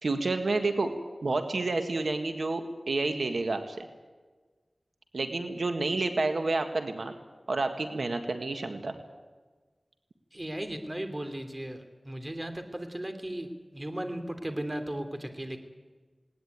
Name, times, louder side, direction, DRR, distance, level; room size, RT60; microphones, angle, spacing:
voice 1, 0.0-0.9 1.2-3.9 5.1-7.1 7.5-9.0, right 3 dB, 85° right, 6 dB, 1.7 m, -29 dB
voice 2, 10.3-15.6, right 1 dB, 30° right, 7 dB, 2.9 m, -36 dB
19.5 x 19.0 x 9.5 m, 1.3 s
wide cardioid pair, 55°, 0 cm